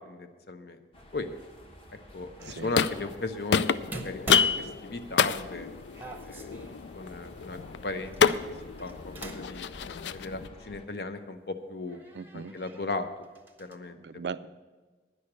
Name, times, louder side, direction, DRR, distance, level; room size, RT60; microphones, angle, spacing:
voice 1, 0.1-0.8 1.1-1.3 2.1-5.7 6.2-6.5 6.9-8.4 8.8-9.7 10.1-12.0 12.3-13.1 13.6-14.0, left 3 dB, 65° left, 8 dB, 0.8 m, -36 dB
sound 1, 0.9-10.9, equal, 30° left, 1.1 m, -51 dB
sound 2, 2.4-3.2 3.5-10.5, left 7 dB, 85° left, 0.4 m, -29 dB
sound 3, 2.4-2.9 3.9-5.4 5.9-6.8 8.1-9.6 9.9-10.0 11.2-11.3 11.9-12.9 13.2-13.8, right 2 dB, 10° right, 0.7 m, -43 dB
voice 2, 12.1-12.5 14.0-14.5, right 5 dB, 75° right, 14 dB, 0.4 m, -38 dB
9.9 x 6.4 x 8.7 m, 1.3 s
head